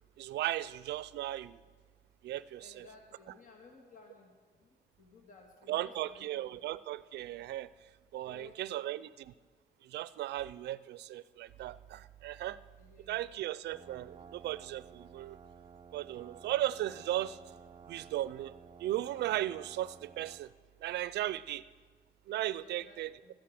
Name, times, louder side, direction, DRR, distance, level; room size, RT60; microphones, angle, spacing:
voice 1, 0.2-1.6 2.2-2.9 5.7-7.7 8.1-9.3 9.8-12.6 13.1-15.4 15.9-17.4 17.9-18.5 18.8-20.5 20.8-21.6 22.3-23.1, right 14 dB, 85° right, 17 dB, 0.4 m, -36 dB
voice 2, 2.6-4.3 4.6-6.6 8.2-8.8 12.8-13.3 22.6-23.3, left 3 dB, 50° left, 1 dB, 1.8 m, -57 dB
sound 1, 13.7-20.5, right 6 dB, 30° right, 0.8 m, -54 dB
13.5 x 10.5 x 6.4 m, 1.4 s
cardioid pair, 100°, 17 cm